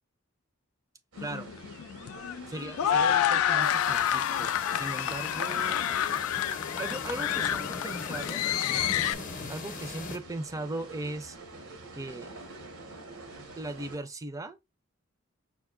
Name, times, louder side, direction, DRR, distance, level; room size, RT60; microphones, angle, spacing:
sound 1, 1.1-14.0, right 2 dB, 90° right, 1.2 m, -47 dB
sound 2, 1.2-9.1, left 10 dB, 80° left, 0.3 m, -28 dB
voice 1, 2.5-5.8 6.8-8.4 9.5-11.4 11.9-12.3 13.6-14.6, right 2 dB, 15° right, 0.4 m, -38 dB
sound 3, 3.6-10.2, left 4 dB, 40° left, 0.7 m, -40 dB
5.8 x 2.5 x 2.4 m
head